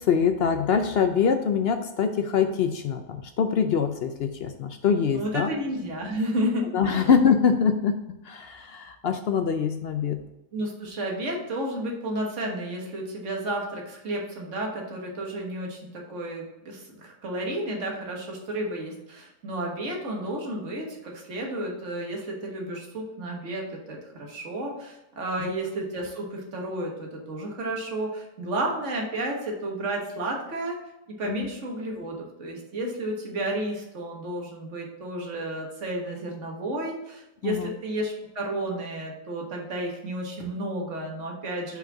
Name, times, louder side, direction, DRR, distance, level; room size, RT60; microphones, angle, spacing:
voice 1, 0.1-5.5 6.7-7.9 8.3-10.2 25.4-25.5 31.3-31.5 37.4-37.7, left 6 dB, 60° left, 7 dB, 0.6 m, -24 dB
voice 2, 5.1-7.1 10.5-30.8 31.2-41.8, right 1 dB, 55° right, 0 dB, 1.7 m, -32 dB
5.7 x 4.4 x 6.0 m, 0.91 s
omnidirectional pair, 1.5 m